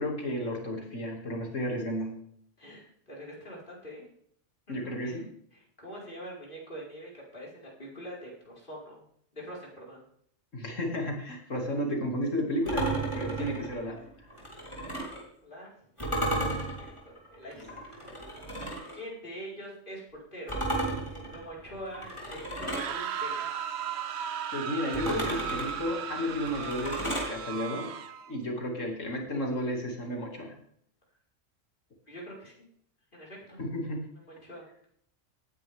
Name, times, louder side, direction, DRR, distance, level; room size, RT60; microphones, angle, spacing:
voice 1, 0.0-2.2 4.7-5.3 10.5-14.0 17.5-17.7 24.5-27.9 28.3-30.5 33.6-34.0, equal, 75° left, 1 dB, 2.9 m, -33 dB
voice 2, 2.6-4.1 4.7-5.2 5.5-9.0 9.3-10.0 13.1-13.5 14.5-14.7 15.4-15.7 16.1-16.3 16.6-16.7 17.0-17.7 18.9-20.0 20.3-20.6 21.1-23.5 32.1-32.5 33.1-33.6 34.1-34.6, equal, 40° left, -5 dB, 5.1 m, -44 dB
sound 1, 12.7-15.2 16.0-19.0 20.5-23.0 24.9-27.3, right 1 dB, 20° left, 3.8 m, -34 dB
sound 2, 22.6-28.3, right 8 dB, 60° right, 1.0 m, -36 dB
18.0 x 10.0 x 3.6 m, 0.67 s
omnidirectional pair, 1.3 m